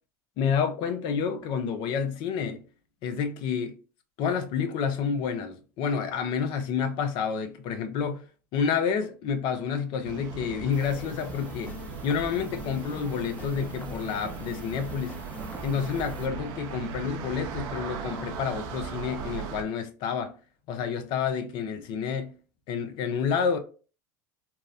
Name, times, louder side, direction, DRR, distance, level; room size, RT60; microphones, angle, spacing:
voice 1, 0.4-2.6 3.0-3.7 4.2-8.2 8.5-11.7 12.0-15.2 15.6-20.3 20.7-22.3 22.7-23.6, left 6 dB, 55° left, 0.5 m, -29 dB
sound 1, 10.0-19.6, right 7 dB, 60° right, 0.5 m, -38 dB
sound 2, 10.7-16.3, left 1 dB, 15° left, 0.7 m, -44 dB
2.8 x 2.0 x 2.4 m
hypercardioid pair, 85°, 9 cm